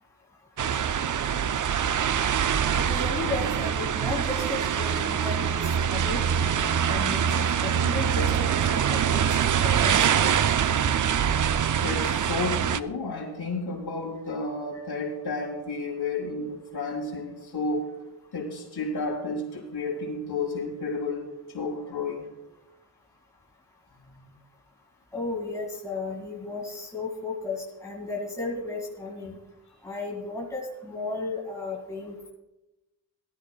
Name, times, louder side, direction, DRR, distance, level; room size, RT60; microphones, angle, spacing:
sound 1, 0.6-12.8, right 8 dB, 45° right, 0.4 m, -24 dB
voice 1, 2.7-5.6 5.9-10.3 14.7-14.8 25.1-29.3 29.8-32.3, left 3 dB, 5° left, -2 dB, 2.1 m, -34 dB
voice 2, 11.8-17.9 18.3-22.3 24.0-24.1, left 3 dB, 55° left, -3 dB, 4.0 m, -32 dB
19.5 x 12.5 x 2.3 m, 1.0 s
wide cardioid pair, 120°, 46 cm